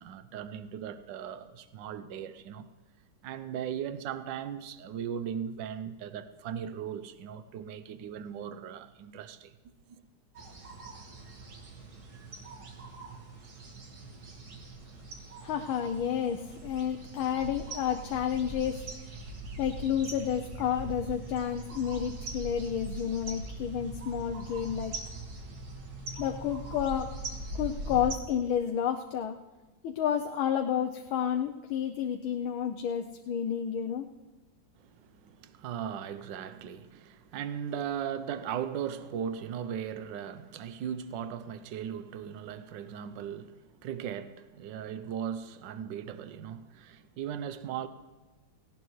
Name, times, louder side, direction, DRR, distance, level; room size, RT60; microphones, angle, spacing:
voice 1, 0.0-2.7 3.2-9.5 9.9-10.0 34.8-47.9, right 8 dB, 70° right, 1.4 m, -38 dB
sound 1, 10.3-28.2, right 2 dB, 50° right, 2.2 m, -42 dB
voice 2, 15.4-18.8 19.6-25.0 26.2-27.1 27.5-29.4 29.8-34.1, left 9 dB, 85° left, 1.5 m, -30 dB
18.5 x 17.5 x 3.2 m
omnidirectional pair, 2.2 m